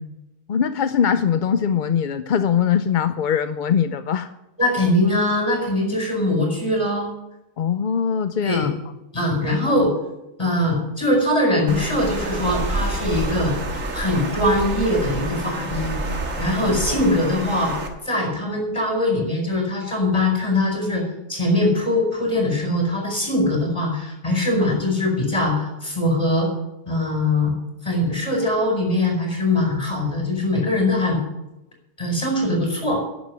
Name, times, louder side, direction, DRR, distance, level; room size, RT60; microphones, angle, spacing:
voice 1, 0.5-4.3 7.6-8.7 9.7-9.8 16.6-17.0, left 7 dB, 55° left, 10 dB, 0.5 m, -22 dB
voice 2, 4.6-7.1 8.4-8.7 9.1-9.9 10.4-13.5 13.9-16.0 16.4-17.7 18.0-21.0 21.3-26.5 26.8-27.5 27.8-31.2 32.0-33.0, left 1 dB, 20° left, -1 dB, 5.0 m, -21 dB
Water, 11.7-17.9, right 2 dB, 85° right, 2.0 m, -28 dB
11.0 x 7.3 x 9.5 m, 0.92 s
omnidirectional pair, 1.3 m